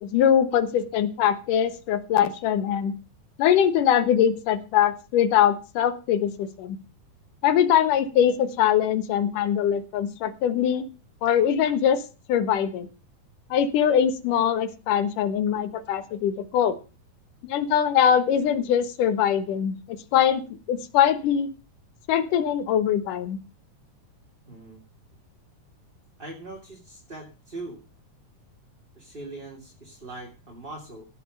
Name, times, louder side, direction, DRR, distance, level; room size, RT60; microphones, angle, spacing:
voice 1, 0.0-2.9 3.4-6.8 7.4-10.9 11.2-12.0 12.3-12.9 13.5-16.8 17.4-20.4 20.7-21.5 22.1-23.4, left 9 dB, 70° left, 11 dB, 2.8 m, -22 dB
voice 2, 24.5-24.8 26.2-27.8 28.9-31.1, right 2 dB, 15° right, 0 dB, 2.4 m, -41 dB
16.5 x 7.0 x 6.5 m, 0.33 s
omnidirectional pair, 3.9 m